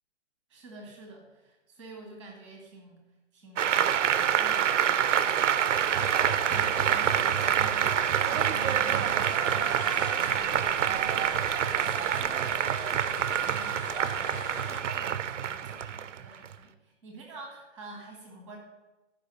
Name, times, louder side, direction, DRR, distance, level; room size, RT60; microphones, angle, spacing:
voice 1, 0.5-3.0 3.3-5.4 5.6-18.6, right 2 dB, 5° right, 0 dB, 1.4 m, -47 dB
Applause, 3.6-16.5, right 9 dB, 80° right, 0.6 m, -26 dB
sound 1, 5.2-14.8, left 6 dB, 45° left, 0.4 m, -43 dB
13.5 x 5.3 x 5.3 m, 1.1 s
hypercardioid pair, 175°, 36 cm